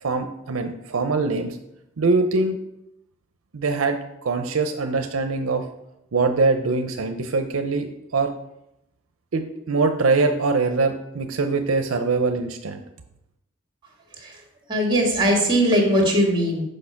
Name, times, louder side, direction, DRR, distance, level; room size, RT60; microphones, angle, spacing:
voice 1, 0.0-1.6 2.0-2.6 3.5-5.6 6.1-7.9 8.1-8.3 9.3-12.8, right 3 dB, 75° right, 7 dB, 0.6 m, -23 dB
voice 2, 14.7-16.6, equal, 25° right, 0 dB, 1.9 m, -20 dB
6.4 x 5.1 x 5.8 m, 0.85 s
head